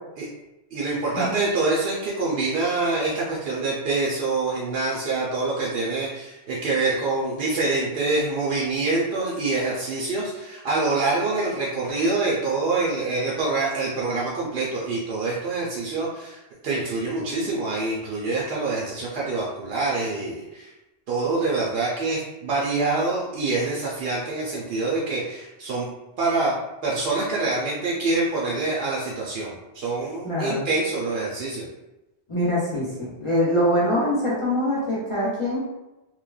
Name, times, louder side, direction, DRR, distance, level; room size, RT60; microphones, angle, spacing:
voice 1, 0.7-20.7 21.1-25.9 26.2-26.5 26.8-31.7, right 3 dB, 70° right, -5 dB, 0.8 m, -25 dB
voice 2, 30.2-30.7 32.3-35.6, equal, 35° left, -7 dB, 0.6 m, -24 dB
3.0 x 2.1 x 2.3 m, 0.99 s
omnidirectional pair, 1.1 m